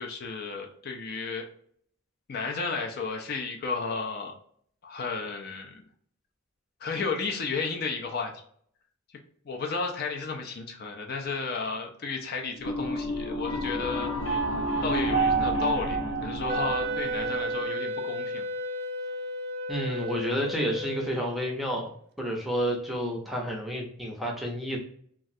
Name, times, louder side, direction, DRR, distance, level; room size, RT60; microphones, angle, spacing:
voice 1, 0.0-1.5 2.3-4.3 4.8-5.8 6.8-8.4 9.4-14.1 14.8-18.5, left 4 dB, 50° left, 2 dB, 0.5 m, -33 dB
sound 1, 12.6-17.6, right 2 dB, 90° left, 1.0 m, -29 dB
Wind instrument woodwind instrument, 16.5-21.7, equal, 50° right, 0.3 m, -33 dB
voice 2, 19.7-21.9 22.2-24.8, equal, ahead, 0 dB, 0.6 m, -30 dB
3.1 x 2.4 x 2.6 m, 0.62 s
head